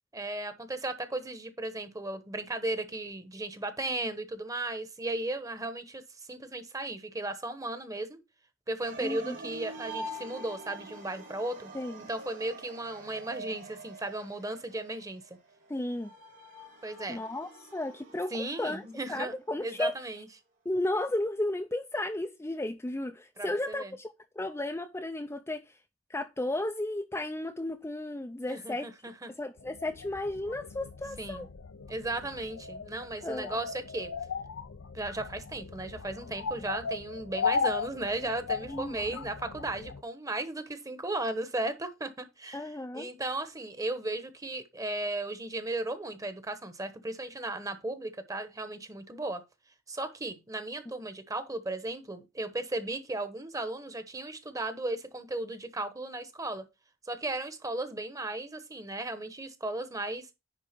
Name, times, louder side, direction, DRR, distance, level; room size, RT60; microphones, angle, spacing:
voice 1, 0.1-6.0 6.3-8.2 8.7-11.7 12.1-15.2 16.8-17.2 18.3-19.3 19.6-20.3 23.4-23.9 28.5-29.3 31.2-31.4 31.9-34.1 34.9-42.6 42.9-49.4 49.9-56.6 57.0-60.3, right 2 dB, 20° right, 1.1 m, -35 dB
sound 1, 8.8-19.1, right 1 dB, 75° right, 3.2 m, -46 dB
voice 2, 9.0-9.4 11.7-12.0 15.7-16.1 17.1-19.9 20.6-25.8 26.1-28.9 29.3-31.5 33.2-33.6 38.7-39.2 42.5-43.1, left 1 dB, 15° left, 0.5 m, -34 dB
sound 2, 29.6-40.0, left 5 dB, 85° left, 0.6 m, -37 dB
10.0 x 3.7 x 5.1 m
head